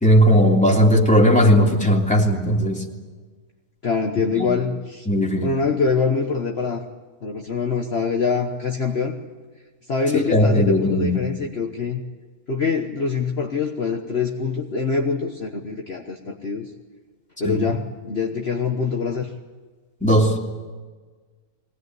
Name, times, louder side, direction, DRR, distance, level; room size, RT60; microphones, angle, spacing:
voice 1, 0.0-2.8 4.3-4.5 5.1-5.5 10.1-11.2 17.4-17.7 20.0-20.4, equal, 5° left, -1 dB, 3.0 m, -17 dB
voice 2, 3.8-5.1 5.4-6.8 7.2-9.2 9.9-12.0 12.5-16.7 17.4-19.3, left 5 dB, 45° left, 2 dB, 1.5 m, -24 dB
22.5 x 19.0 x 9.5 m, 1.4 s
omnidirectional pair, 1.6 m